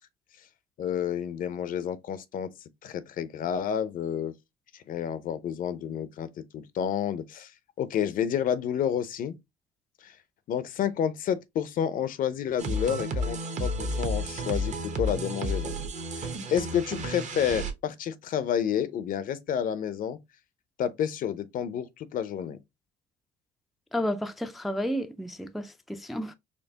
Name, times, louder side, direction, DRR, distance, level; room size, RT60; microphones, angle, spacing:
voice 1, 0.8-2.5 2.8-4.3 4.9-6.3 6.5-7.5 7.8-9.4 10.0-10.1 10.5-15.7 16.1-20.2 20.8-22.6, left 9 dB, 55° left, 0.6 m, -30 dB
sound 1, 12.6-17.7, equal, 45° right, 0.9 m, -32 dB
voice 2, 23.9-26.3, equal, ahead, 0.4 m, -31 dB
4.4 x 2.8 x 2.8 m
cardioid pair, 110°, 17 cm